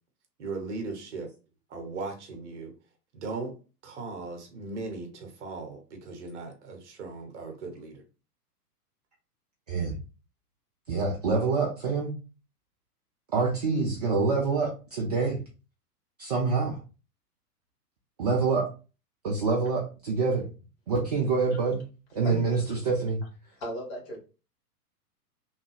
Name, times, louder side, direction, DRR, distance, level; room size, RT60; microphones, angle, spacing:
voice 1, 0.4-1.3 1.7-2.7 3.1-3.6 3.8-8.0, right 3 dB, 45° right, 0.9 m, -38 dB
voice 2, 10.9-12.1 13.3-15.4 16.2-16.8 18.2-18.7 19.2-20.5 20.9-21.8 22.1-23.2, right 4 dB, 30° right, 0.4 m, -26 dB
voice 3, 23.6-24.2, equal, 40° left, 1.7 m, -36 dB
3.1 x 2.2 x 3.2 m
figure-of-eight pair, 105°, 47 cm